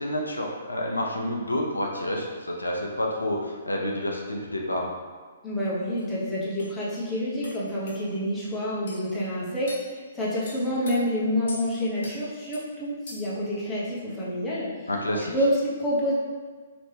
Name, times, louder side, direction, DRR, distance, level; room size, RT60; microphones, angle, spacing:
voice 1, 0.0-4.9 14.9-15.3, left 1 dB, 90° left, 0 dB, 0.5 m, -29 dB
voice 2, 5.4-14.9 15.2-16.1, equal, 10° left, -8 dB, 1.0 m, -28 dB
sound 1, 6.0-6.1 6.6-6.7 7.4-7.6 7.9-8.0 8.9-9.0 9.7-9.9 10.4-11.0 11.5-11.6 12.0-12.2 12.5-12.7 13.1-13.4, left 2 dB, 60° left, 0.9 m, -41 dB
3.1 x 3.0 x 3.2 m, 1.5 s
figure-of-eight pair, 125°, 0 cm